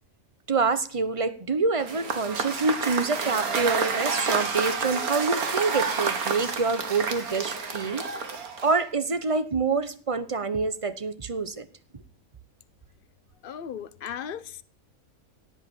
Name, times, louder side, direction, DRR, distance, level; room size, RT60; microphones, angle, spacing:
voice 1, 0.5-8.0 8.6-11.7, right 4 dB, 25° right, 0.9 m, -26 dB
Cheering / Applause / Crowd, 1.8-8.9, right 5 dB, 85° right, 2.2 m, -29 dB
voice 2, 13.4-14.6, left 8 dB, 45° left, 1.0 m, -36 dB
18.0 x 8.4 x 7.0 m
omnidirectional pair, 1.5 m